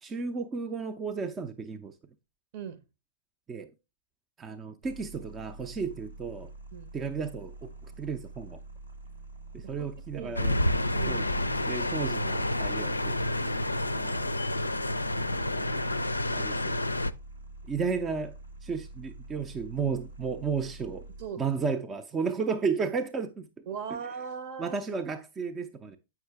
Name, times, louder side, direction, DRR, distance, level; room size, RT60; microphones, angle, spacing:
voice 1, 0.0-1.9 3.5-3.7 4.4-6.5 6.9-8.6 9.5-10.6 11.1-11.3 11.7-13.2 13.8-14.3 15.6-15.8 16.3-16.8 17.7-18.3 18.6-21.1 21.4-23.5 24.6-26.0, right 5 dB, 20° right, 0.5 m, -33 dB
sound 1, 4.8-21.3, right 2 dB, 85° right, 1.2 m, -46 dB
sound 2, 10.4-17.1, left 1 dB, 90° left, 0.4 m, -29 dB
voice 2, 10.9-11.6 21.2-21.4 22.2-22.3 23.7-24.8, right 7 dB, 50° right, 0.9 m, -38 dB
7.6 x 5.8 x 3.4 m
figure-of-eight pair, 105°, 0 cm